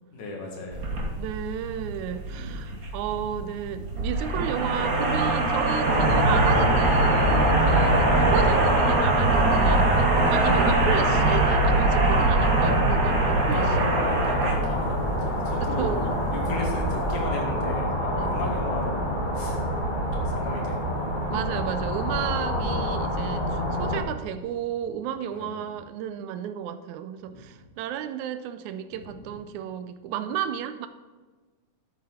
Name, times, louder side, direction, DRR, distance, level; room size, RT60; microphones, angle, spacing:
voice 1, 0.1-0.9 2.3-2.6 13.4-15.0 15.3-16.0 16.3-19.6 20.3-20.9 25.3-25.5, left 2 dB, 85° left, 0 dB, 3.4 m, -35 dB
sound 1, 0.7-17.3, right 2 dB, 45° right, 1.1 m, -24 dB
voice 2, 1.2-13.7 15.6-16.2 16.4-16.6 18.1-18.3 21.3-30.9, right 9 dB, 85° right, 11 dB, 2.0 m, -33 dB
sound 2, 5.8-24.0, equal, 30° left, 0.9 m, -26 dB
11.5 x 7.5 x 4.2 m, 1.3 s
omnidirectional pair, 3.4 m